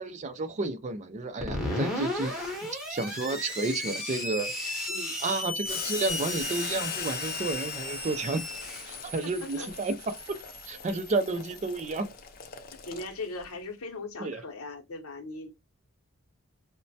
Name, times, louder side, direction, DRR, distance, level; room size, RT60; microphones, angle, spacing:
voice 1, 0.0-2.5 2.9-4.8 5.2-8.4 8.9-9.9 10.7-12.0 14.2-14.4, right 3 dB, 35° right, 0.4 m, -31 dB
Screech, 1.4-11.9, left 1 dB, ahead, 0.8 m, -36 dB
voice 2, 1.6-2.0 4.9-5.2 8.6-9.7 12.7-15.5, left 2 dB, 70° left, 0.8 m, -40 dB
Boiling, 5.7-13.4, left 7 dB, 40° left, 0.5 m, -40 dB
3.0 x 2.1 x 2.7 m
head